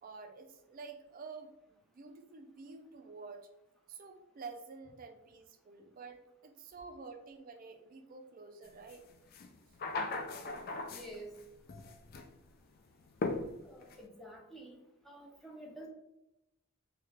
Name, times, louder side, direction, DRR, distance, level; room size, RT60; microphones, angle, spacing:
voice 1, 0.0-3.5 3.9-9.1, right 4 dB, 40° right, 6 dB, 0.4 m, -49 dB
sound 1, 8.9-9.0 9.3-11.4 11.7-12.3 13.2-14.0, left 3 dB, 45° left, 0.3 m, -38 dB
voice 2, 10.9-11.4 13.6-14.8 15.0-15.9, right 1 dB, ahead, -2 dB, 0.6 m, -49 dB
3.1 x 2.3 x 3.2 m, 0.88 s
head